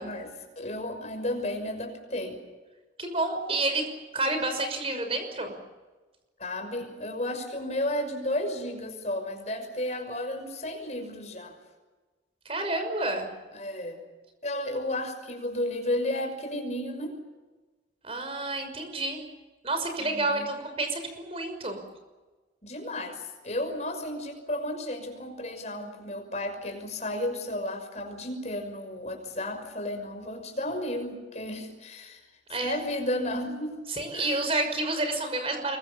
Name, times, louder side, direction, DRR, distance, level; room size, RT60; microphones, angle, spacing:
voice 1, 0.0-2.4 6.4-11.6 13.5-14.0 14.4-17.2 20.0-20.5 22.6-32.2 32.6-33.8 34.1-34.5, left 1 dB, 40° left, 5 dB, 6.0 m, -33 dB
voice 2, 3.0-3.8 4.1-5.6 12.4-13.3 18.0-19.2 19.6-21.8 32.5-32.8 33.9-35.8, right 2 dB, 30° right, 6 dB, 5.9 m, -29 dB
26.5 x 23.5 x 7.2 m, 1.2 s
head